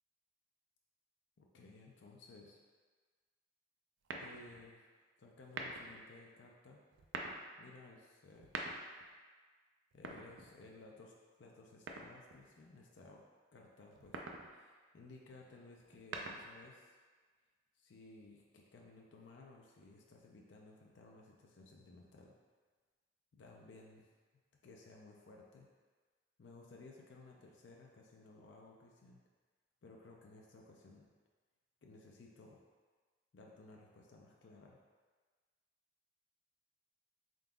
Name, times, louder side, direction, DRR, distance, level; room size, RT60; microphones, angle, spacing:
voice 1, 1.4-2.6 4.2-6.8 7.6-8.6 9.9-13.2 13.5-17.0 17.7-22.4 23.3-24.1 24.6-25.7 26.4-29.2 29.8-31.1 31.8-32.6 33.3-34.8, left 3 dB, 75° left, -1 dB, 0.4 m, -58 dB
sound 1, 4.0-4.7 5.4-6.0 6.9-7.4 8.3-9.1 9.9-10.8 11.9-12.5 13.9-14.5 15.8-16.7, right 3 dB, 90° right, 0.4 m, -45 dB
3.8 x 3.7 x 2.3 m, 1.5 s
head